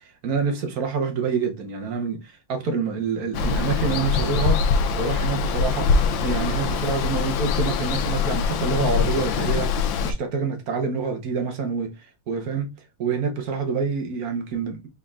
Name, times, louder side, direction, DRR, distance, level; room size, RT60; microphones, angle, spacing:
voice 1, 0.0-4.6 5.0-5.9 6.2-9.7 10.0-11.9 12.3-12.7 13.0-14.9, right 5 dB, 55° right, 1.2 m, -27 dB
Water, 3.3-10.1, left 5 dB, 70° left, 1.3 m, -23 dB
5.1 x 3.6 x 2.4 m
omnidirectional pair, 2.3 m